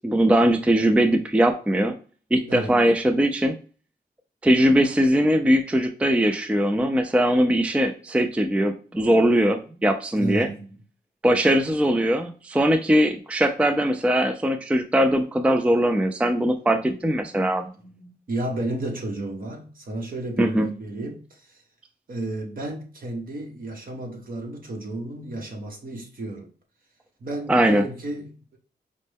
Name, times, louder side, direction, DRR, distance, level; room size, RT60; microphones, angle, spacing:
voice 1, 0.0-1.9 2.3-3.6 4.4-10.5 11.2-17.7 20.4-20.7 27.5-27.8, right 1 dB, 5° right, 0.3 m, -20 dB
voice 2, 2.5-2.8 10.2-10.8 17.7-21.6 22.1-26.5 27.2-28.6, right 2 dB, 60° right, 1.2 m, -32 dB
5.1 x 2.1 x 3.4 m
wide cardioid pair, 105°, 17 cm